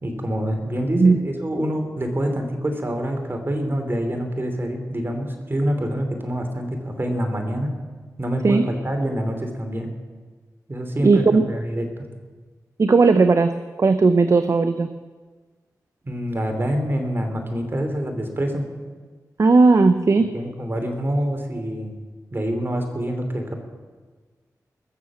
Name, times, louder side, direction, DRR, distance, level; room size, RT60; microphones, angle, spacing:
voice 1, 0.0-7.8 8.2-9.9 10.7-11.9 16.0-18.7 20.3-22.0 22.3-23.5, equal, 35° right, 4 dB, 2.9 m, -26 dB
voice 2, 11.0-11.4 12.8-13.5 13.8-14.9 19.4-20.3, right 3 dB, 50° right, 10 dB, 0.7 m, -16 dB
21.0 x 7.2 x 7.3 m, 1.4 s
cardioid pair, 55°, 7 cm